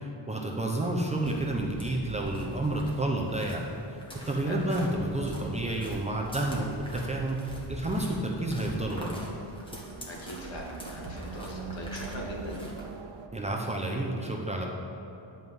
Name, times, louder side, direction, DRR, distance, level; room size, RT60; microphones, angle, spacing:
voice 1, 0.0-4.0 4.3-9.1 13.3-14.7, right 1 dB, 15° right, -1 dB, 0.8 m, -30 dB
sound 1, 1.1-13.0, right 1 dB, 10° left, 1.4 m, -43 dB
sound 2, 6.4-13.3, right 5 dB, 60° right, 0.7 m, -45 dB
voice 2, 10.0-12.7, left 1 dB, 65° left, -2 dB, 2.3 m, -41 dB
10.5 x 5.5 x 7.8 m, 3.0 s
wide cardioid pair, 175°, 48 cm